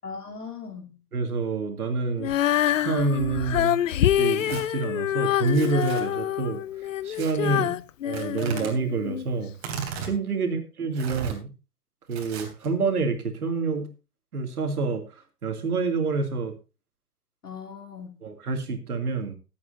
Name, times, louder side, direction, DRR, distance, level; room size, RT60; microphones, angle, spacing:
voice 1, 0.0-0.9 7.4-7.8 10.4-10.5 17.4-18.2, left 6 dB, 85° left, 3.4 m, -39 dB
voice 2, 1.1-2.3 2.6-3.8 4.2-6.6 7.0-7.7 8.0-9.5 10.0-11.5 12.1-13.9 14.3-16.5 18.2-19.4, right 4 dB, 75° right, 2.7 m, -27 dB
Female singing, 2.2-9.3 9.9-10.0, left 12 dB, 55° left, 0.7 m, -26 dB
Tearing, 4.2-4.6 5.4-6.0 7.1-7.3 8.1-8.7 9.5-10.1 10.9-11.4 12.1-12.7, right 7 dB, 45° right, 3.3 m, -36 dB
19.0 x 8.6 x 2.7 m
hypercardioid pair, 130°, 46 cm